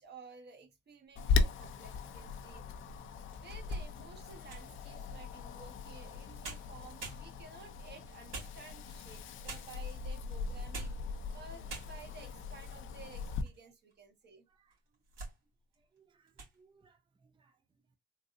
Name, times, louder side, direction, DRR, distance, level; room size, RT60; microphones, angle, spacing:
voice 1, 0.0-2.6 3.4-14.4, right 4 dB, 60° right, 1.3 m, -54 dB
sound 1, 1.1-1.9 2.5-2.6 3.1-4.8 6.1-6.2 6.4-7.6 8.3-9.0 9.5-9.9 10.5-11.1 11.4-11.5 11.7-12.2 12.8-13.6 13.9-14.0 14.7-15.4 15.7-16.0 16.3-16.6, right 2 dB, 85° right, 2.2 m, -46 dB
Wind, 1.2-13.4, left 4 dB, 80° left, 0.6 m, -38 dB
voice 2, 14.5-15.0 15.8-18.0, right 5 dB, 25° right, 0.5 m, -69 dB
3.8 x 2.5 x 2.5 m
cardioid pair, 90°, 20 cm